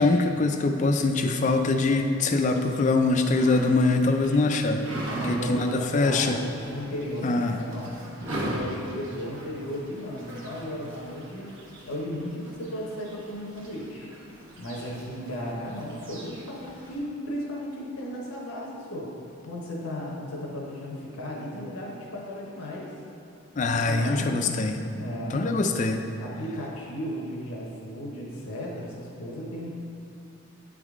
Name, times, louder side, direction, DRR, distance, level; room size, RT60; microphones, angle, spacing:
voice 1, 0.0-4.8 5.3-6.4 7.2-7.6 23.6-24.8 25.3-26.0, left 3 dB, 35° left, 5 dB, 0.3 m, -23 dB
sound 1, 2.5-17.0, right 1 dB, 65° right, 1.2 m, -40 dB
voice 2, 5.1-8.0 8.4-11.5 11.9-14.1 14.6-19.1 19.4-22.9 23.8-24.6 25.0-25.6 26.2-29.7, equal, 85° left, -4 dB, 0.9 m, -35 dB
9.3 x 3.6 x 3.5 m, 2.6 s
head